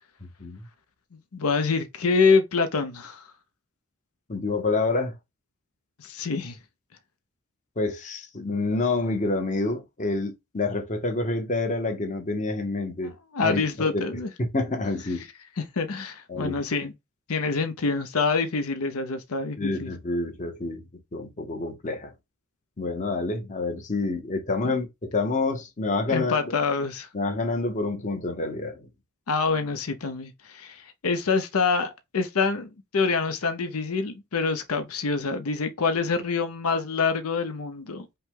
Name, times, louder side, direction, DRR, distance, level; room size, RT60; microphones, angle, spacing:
voice 1, 1.3-3.2 6.0-6.6 13.0-14.3 15.6-16.9 17.3-19.9 24.6-24.7 26.1-27.1 29.3-38.1, left 4 dB, 80° left, 0.7 m, -26 dB
voice 2, 4.3-5.1 7.8-13.1 13.4-15.2 16.3-16.6 19.6-20.8 21.1-22.1 22.8-26.5 27.1-28.9, left 3 dB, 35° left, 1.0 m, -28 dB
5.5 x 2.2 x 3.7 m
head